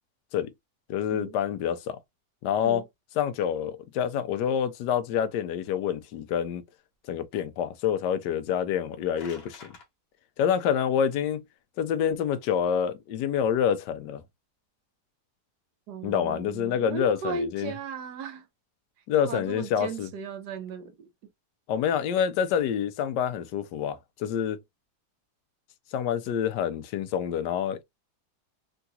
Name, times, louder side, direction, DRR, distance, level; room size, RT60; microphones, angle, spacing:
voice 1, 0.9-2.0 2.4-2.8 3.2-6.6 7.1-9.7 10.4-11.4 11.8-14.2 16.0-17.7 19.1-20.1 21.7-24.6 25.9-27.8, left 8 dB, 85° left, 1.2 m, -27 dB
sound 1, 8.8-9.9, left 4 dB, 45° left, 0.9 m, -49 dB
voice 2, 15.9-18.5 19.2-21.1, right 4 dB, 75° right, 1.3 m, -36 dB
3.7 x 2.3 x 2.7 m
omnidirectional pair, 1.8 m